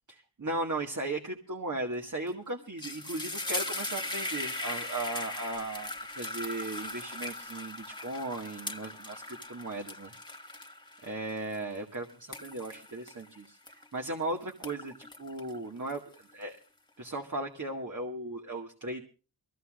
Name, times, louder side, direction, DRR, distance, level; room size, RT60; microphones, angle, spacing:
voice 1, 0.1-10.1 11.0-16.0 16.3-16.6 17.0-19.1, right 2 dB, 45° right, 1 dB, 2.1 m, -37 dB
sound 1, 2.1-2.3 2.6-14.1 14.5-16.4, left 2 dB, 10° left, 1.6 m, -39 dB
23.0 x 16.0 x 2.6 m, 0.35 s
cardioid pair, 45°, 41 cm